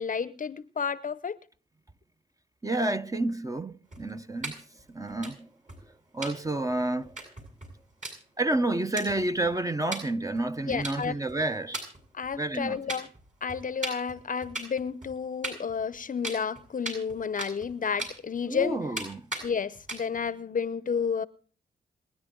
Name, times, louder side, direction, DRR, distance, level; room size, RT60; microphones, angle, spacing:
voice 1, 0.0-1.4 10.7-11.2 12.1-13.1 13.4-18.8 19.4-21.2, left 6 dB, 45° left, 0.7 m, -31 dB
voice 2, 2.6-5.5 5.8-7.2 8.4-11.8 12.3-12.8 18.4-19.2, right 2 dB, 20° right, 1.0 m, -30 dB
sound 1, 3.9-4.5 4.8-4.9 5.1-5.3 5.7-5.8 6.2-6.3 6.7-6.8 7.0-8.1 8.5-8.6 9.0-9.5 9.9-10.0 10.3-11.4 11.7-12.6 12.9-13.2 13.5-15.2 15.4-16.0 16.2-17.7 18.0-18.6 19.0-19.1 19.3-19.5 19.7-20.2, right 2 dB, 40° right, 7.5 m, -37 dB
26.5 x 10.0 x 3.8 m
cardioid pair, 55°, 19 cm